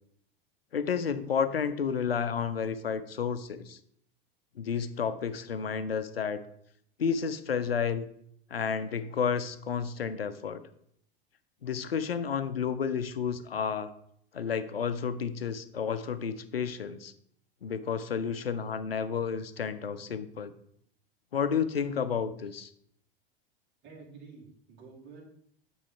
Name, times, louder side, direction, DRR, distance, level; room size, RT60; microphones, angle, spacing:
voice 1, 0.7-3.8 4.6-6.4 7.0-8.1 8.5-10.6 11.6-13.9 14.3-17.1 17.6-20.5 21.3-22.7, left 6 dB, 80° left, 13 dB, 0.5 m, -31 dB
voice 2, 23.8-25.2, right 4 dB, 40° right, -1 dB, 1.8 m, -49 dB
8.7 x 3.1 x 4.4 m, 0.69 s
figure-of-eight pair, 85°, 29 cm